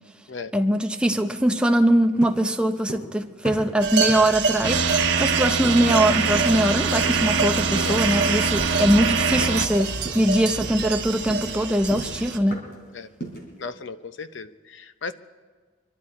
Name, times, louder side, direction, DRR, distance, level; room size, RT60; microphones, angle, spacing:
voice 1, 0.5-12.6, right 1 dB, 5° right, 0.6 m, -22 dB
sound 1, 2.2-3.2 3.4-5.0 5.6-5.9 6.3-6.6 7.0-7.3 7.8-8.4 8.7-9.0 9.4-9.8 10.1-10.3 10.6-12.9 13.2-13.6, right 1 dB, 55° left, 3.5 m, -37 dB
sound 2, 3.8-12.4, right 4 dB, 65° right, 1.1 m, -28 dB
sound 3, 4.6-9.7, right 5 dB, 90° right, 1.1 m, -24 dB
voice 2, 7.7-8.0 12.9-13.1 13.6-15.1, left 4 dB, 85° left, 0.7 m, -35 dB
24.5 x 12.5 x 4.3 m
head